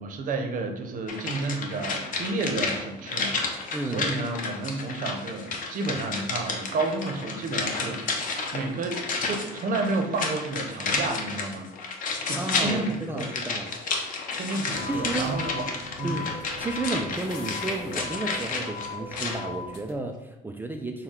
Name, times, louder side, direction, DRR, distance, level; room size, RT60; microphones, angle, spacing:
voice 1, 0.0-11.7 12.3-13.3 14.4-15.6 16.0-16.2, right 3 dB, 55° right, 4 dB, 0.8 m, -31 dB
sound 1, 1.1-19.4 19.7-19.8, left 4 dB, 50° left, 0.8 m, -31 dB
voice 2, 3.7-4.1 12.4-13.7 14.9-15.3 16.0-16.3 16.6-21.0, right 2 dB, 10° right, 3 dB, 0.4 m, -32 dB
sound 2, 14.7-19.9, left 4 dB, 90° left, 0.7 m, -38 dB
6.2 x 2.3 x 3.7 m, 0.96 s
cardioid pair, 110°, 17 cm